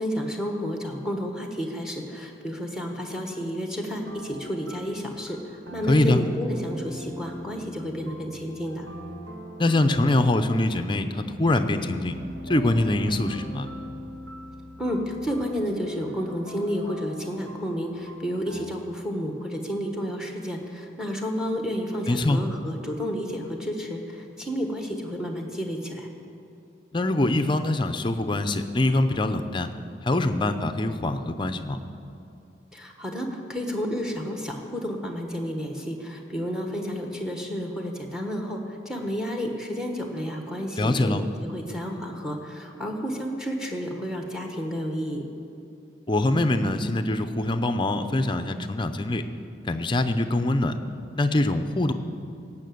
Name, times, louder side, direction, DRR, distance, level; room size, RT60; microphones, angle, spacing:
voice 1, 0.0-8.9 14.8-26.1 32.7-45.2, equal, 5° right, 2 dB, 1.3 m, -31 dB
sound 1, 4.0-18.6, equal, 65° right, 1.6 m, -42 dB
voice 2, 5.9-6.2 9.6-12.2 12.5-13.7 22.1-22.4 26.9-29.7 30.0-31.8 40.8-41.2 46.1-49.2 49.7-50.8 51.2-51.9, left 2 dB, 25° left, 9 dB, 0.6 m, -23 dB
17.5 x 5.9 x 7.9 m, 2.7 s
head